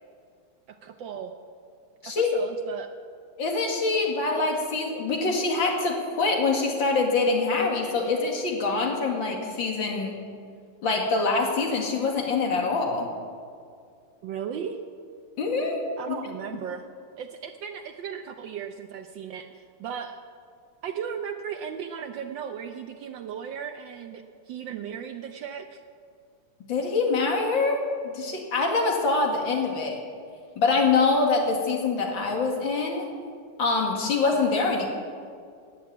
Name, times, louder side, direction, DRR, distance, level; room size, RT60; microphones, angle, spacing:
voice 1, 0.7-1.3 2.0-2.9 14.2-14.8 16.0-16.9 17.2-20.2 20.8-25.8, right 7 dB, 70° right, 6 dB, 1.3 m, -36 dB
voice 2, 3.4-10.2 10.8-13.1 15.4-15.8 16.1-16.2 26.7-30.0 30.6-33.1 33.6-34.9, left 3 dB, 65° left, 1 dB, 2.7 m, -25 dB
14.5 x 9.9 x 8.5 m, 2.3 s
omnidirectional pair, 2.3 m